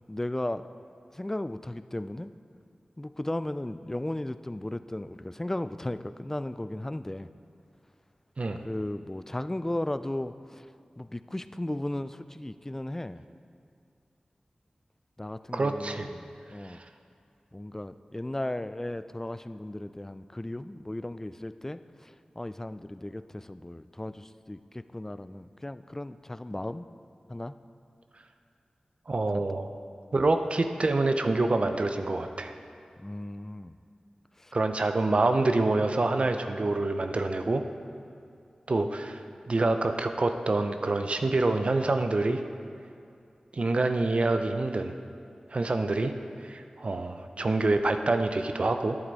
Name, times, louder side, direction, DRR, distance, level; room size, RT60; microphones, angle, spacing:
voice 1, 0.1-0.7 1.1-2.3 3.0-7.3 8.6-10.7 11.0-13.2 15.2-16.8 17.5-26.9 27.3-27.5 33.0-33.8 34.4-34.5, left 1 dB, 15° left, 12 dB, 0.3 m, -35 dB
voice 2, 15.5-16.1 16.6-16.8 29.1-29.7 30.1-32.5 34.5-37.6 38.7-39.2 39.5-42.4 43.5-44.9 45.5-46.1 46.4-49.0, right 2 dB, 55° right, 7 dB, 0.5 m, -26 dB
11.0 x 8.0 x 4.0 m, 2.5 s
wide cardioid pair, 55°, 2 cm